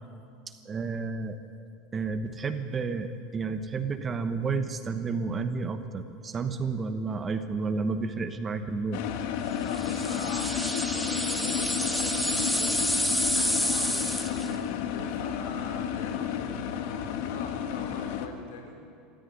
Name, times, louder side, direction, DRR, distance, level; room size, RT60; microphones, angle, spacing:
voice 1, 0.6-1.4 1.9-9.0, right 4 dB, 15° right, 8 dB, 1.0 m, -31 dB
sound 1, 8.9-18.3, left 8 dB, 60° left, 1.6 m, -32 dB
voice 2, 9.6-18.8, left 5 dB, 85° left, 3 dB, 4.8 m, -42 dB
sound 2, 9.7-14.5, equal, ahead, 1.1 m, -29 dB
26.5 x 14.0 x 9.8 m, 2.5 s
supercardioid pair, 170°, 0 cm